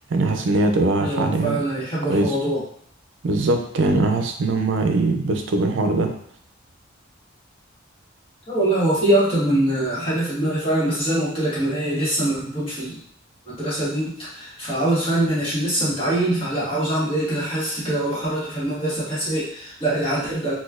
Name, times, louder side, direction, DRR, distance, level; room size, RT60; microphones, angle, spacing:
voice 1, 0.1-1.6 2.1-2.4 3.2-6.1, right 2 dB, 65° right, 5 dB, 0.5 m, -21 dB
voice 2, 1.0-2.6 8.5-13.0 13.5-20.6, right 1 dB, 30° left, -9 dB, 1.4 m, -23 dB
4.1 x 2.3 x 2.4 m, 0.64 s
head